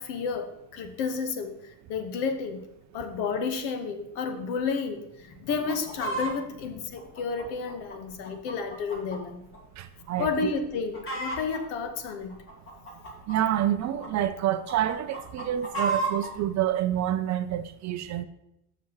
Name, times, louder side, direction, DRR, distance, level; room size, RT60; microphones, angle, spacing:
voice 1, 0.0-1.6 1.9-2.6 2.9-9.4 10.2-12.3, left 5 dB, 85° left, 1.3 m, -31 dB
Chicken rooster, 5.5-6.3 7.0-9.2 9.5-9.6 10.2-10.4 10.7-11.6 12.3-14.1 14.5-16.3 17.0-17.1, right 2 dB, 25° left, 2.1 m, -33 dB
voice 2, 9.8-10.5 13.3-18.2, right 11 dB, 40° right, 0.4 m, -28 dB
13.5 x 5.9 x 3.0 m
cardioid pair, 140°, 49 cm